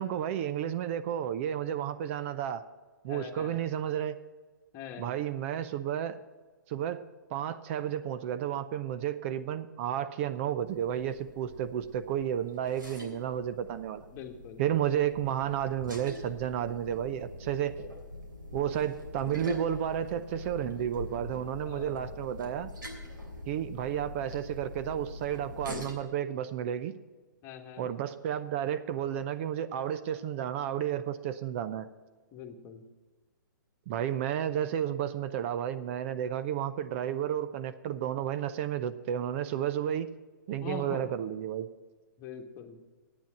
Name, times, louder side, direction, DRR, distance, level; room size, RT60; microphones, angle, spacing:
voice 1, 0.0-2.6 3.0-4.2 5.0-6.2 6.7-7.1 7.3-14.0 14.6-17.8 18.5-22.7 23.5-26.9 27.8-31.9 33.9-40.1 40.5-41.7, right 10 dB, 40° right, 12 dB, 0.5 m, -32 dB
voice 2, 3.1-3.6 4.7-5.2 14.1-14.6 21.6-22.1 27.4-27.9 32.3-32.8 40.6-41.0 42.2-42.8, left 7 dB, 30° left, 4 dB, 1.4 m, -43 dB
sound 1, 10.6-25.9, left 1 dB, 90° right, 3.1 m, -43 dB
9.4 x 8.8 x 7.7 m, 1.4 s
hypercardioid pair, 130°, 11 cm